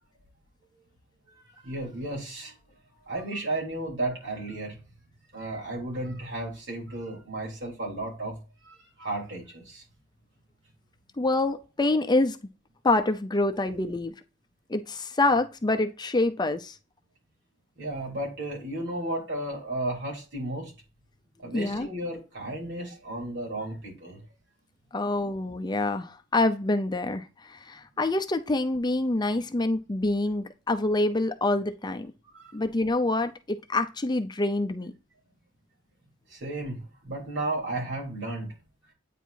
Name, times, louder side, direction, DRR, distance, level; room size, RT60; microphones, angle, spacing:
voice 1, 1.6-2.5 3.1-4.8 5.3-8.4 8.6-9.8 17.8-20.7 21.4-24.2 32.3-32.6 36.3-38.5, right 2 dB, 70° right, -2 dB, 3.5 m, -34 dB
voice 2, 11.2-12.4 12.8-14.1 14.7-16.7 21.5-21.9 24.9-32.1 32.5-34.9, left 2 dB, 25° left, 7 dB, 0.6 m, -26 dB
9.1 x 4.6 x 2.6 m, 0.32 s
head